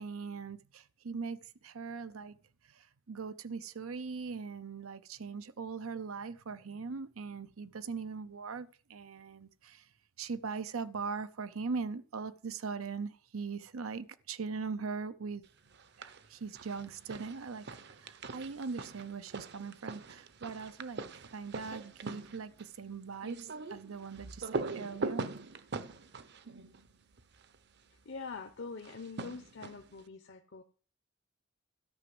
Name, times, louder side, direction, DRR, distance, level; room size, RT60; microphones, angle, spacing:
voice 1, 0.0-2.4 2.7-9.9 10.2-15.4 16.0-17.7 18.0-21.0 21.3-25.3, right 5 dB, 90° right, 0.7 m, -40 dB
sound 1, 15.7-16.3 16.5-27.6 28.8-30.0, right 3 dB, 55° right, 0.8 m, -42 dB
voice 2, 28.0-30.6, left 4 dB, 60° left, 0.8 m, -44 dB
13.0 x 6.0 x 7.7 m
head